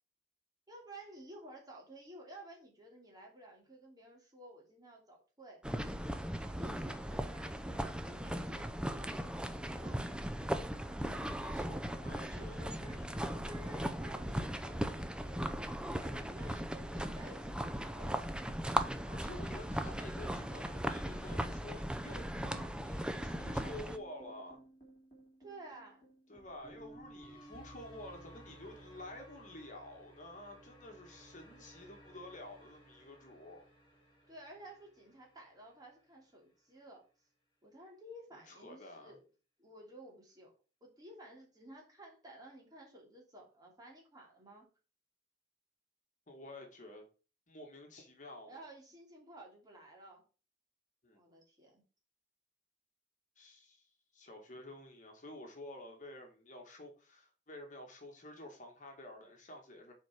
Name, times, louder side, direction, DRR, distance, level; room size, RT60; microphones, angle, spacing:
voice 1, 0.7-5.6 6.1-10.1 12.3-15.5 16.0-18.7 25.4-26.1 34.3-37.0 37.6-39.2 39.6-40.5 40.8-44.7 48.5-50.2 51.1-51.8, right 1 dB, 20° right, -1 dB, 2.9 m, -54 dB
sound 1, 5.6-24.0, right 1 dB, 5° right, 0.6 m, -38 dB
voice 2, 11.4-12.9 16.5-16.6 19.0-24.6 26.3-33.6 38.3-39.1 46.3-47.0 47.5-48.6 51.0-51.2 53.4-59.9, left 1 dB, 45° left, 2 dB, 1.9 m, -50 dB
sound 2, 23.6-35.8, right 1 dB, 30° left, 3.9 m, -58 dB
6.9 x 4.7 x 5.9 m, 0.35 s
head